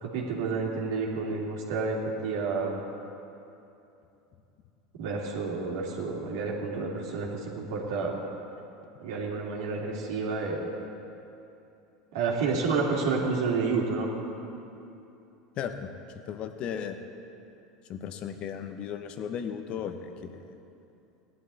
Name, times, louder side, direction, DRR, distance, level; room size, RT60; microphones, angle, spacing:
voice 1, 0.0-2.7 5.0-8.2 9.0-10.7 12.1-14.1, right 4 dB, 75° right, -3 dB, 2.7 m, -30 dB
voice 2, 15.6-15.9 16.3-17.0 17.9-20.4, left 8 dB, 50° left, 8 dB, 1.1 m, -35 dB
17.0 x 11.5 x 4.2 m, 2.8 s
hypercardioid pair, 90°, 2 cm